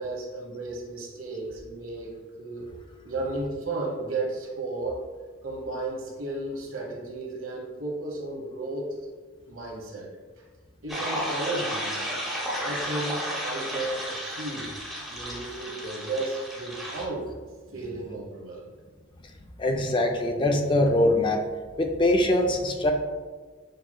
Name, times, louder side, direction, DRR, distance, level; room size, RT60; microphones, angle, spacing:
voice 1, 0.0-2.7 3.0-5.0 5.4-8.9 9.5-10.1 10.8-12.0 12.6-14.7 15.1-17.3 17.7-18.7, right 2 dB, 80° right, -2 dB, 1.1 m, -34 dB
sound 1, 10.9-17.0, equal, ahead, 0.8 m, -33 dB
voice 2, 19.6-21.4 21.8-22.9, left 1 dB, 25° left, 3 dB, 0.3 m, -23 dB
6.6 x 3.0 x 2.2 m, 1.4 s
head